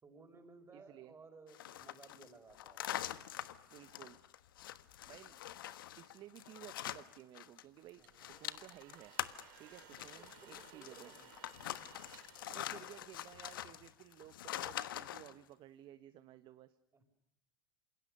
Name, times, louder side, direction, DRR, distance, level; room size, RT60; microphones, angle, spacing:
voice 1, 0.0-2.8 8.0-8.5 10.0-11.3 16.9-17.1, right 3 dB, 20° right, 7 dB, 5.9 m, -59 dB
voice 2, 0.7-1.1 3.7-4.2 5.1-5.4 6.0-9.1 9.6-11.1 12.5-16.8, right 13 dB, 45° right, 11 dB, 1.3 m, -55 dB
sound 1, 1.5-7.6 7.9-15.3, left 12 dB, 75° left, 1.3 m, -45 dB
sound 2, 7.8-13.5, right 10 dB, 60° right, 5.4 m, -61 dB
28.5 x 27.5 x 6.8 m, 0.77 s
hypercardioid pair, 80°, 12 cm